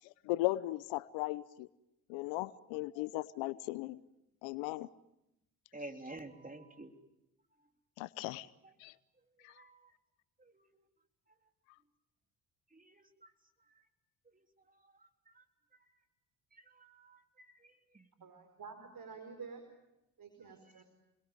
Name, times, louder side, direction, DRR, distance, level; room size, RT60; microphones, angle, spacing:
voice 1, 0.3-1.7 2.1-4.0 4.4-4.9 8.0-8.5 8.8-8.9 9.4-9.5, left 18 dB, 75° left, 18 dB, 0.9 m, -37 dB
voice 2, 5.7-6.9 8.6-8.7 9.6-9.9 10.4-10.6 12.7-13.3 14.3-14.4 15.3-15.4 16.5-17.5 17.9-18.4, right 2 dB, 20° right, 6 dB, 3.6 m, -50 dB
voice 3, 18.2-19.6 20.2-20.8, right 5 dB, 45° right, 7 dB, 4.7 m, -49 dB
29.5 x 22.0 x 9.2 m, 0.89 s
hypercardioid pair, 55°, 45 cm